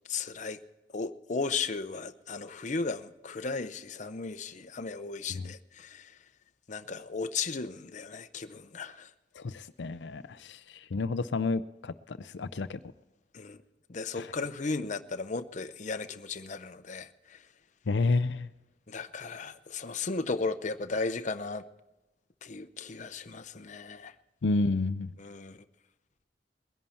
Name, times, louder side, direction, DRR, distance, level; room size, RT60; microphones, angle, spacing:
voice 1, 0.1-0.6 0.9-6.1 6.7-9.1 13.3-13.6 13.9-17.4 18.9-21.6 22.4-24.1 25.2-25.6, left 4 dB, 45° left, 9 dB, 0.7 m, -35 dB
voice 2, 9.3-12.8 14.2-14.3 17.9-18.5 24.4-25.1, left 3 dB, 80° left, 11 dB, 0.5 m, -30 dB
21.0 x 11.0 x 4.3 m, 1.0 s
head